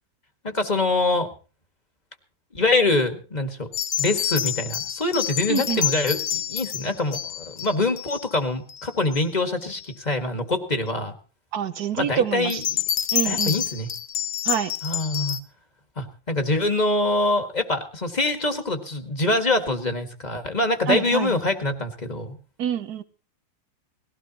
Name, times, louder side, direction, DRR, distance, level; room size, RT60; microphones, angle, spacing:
voice 1, 0.4-1.3 2.5-3.7 4.0-11.1 11.9-12.8 13.3-13.9 14.8-15.4 16.0-22.4, left 2 dB, 25° left, 1.8 m, -24 dB
sound 1, 3.7-8.3 8.7-9.2 9.7-9.8 12.4-15.4, left 10 dB, 55° left, 1.1 m, -28 dB
voice 2, 5.5-5.8 11.5-12.6 13.1-13.6 14.5-14.7 20.9-21.3 22.6-23.0, right 9 dB, 60° right, 1.3 m, -26 dB
19.5 x 16.5 x 2.9 m
omnidirectional pair, 2.0 m